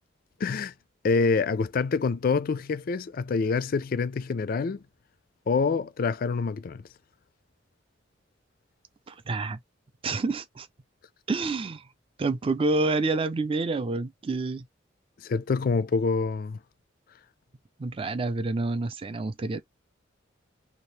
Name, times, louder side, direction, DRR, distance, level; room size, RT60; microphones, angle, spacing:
voice 1, 0.4-0.7 1.0-4.8 5.5-6.8 15.2-16.6, left 4 dB, 50° left, 0.4 m, -26 dB
voice 2, 9.1-9.6 10.0-10.7 11.3-11.9 12.2-14.7 17.8-19.6, right 3 dB, 30° right, 0.4 m, -28 dB
2.8 x 2.3 x 3.2 m
head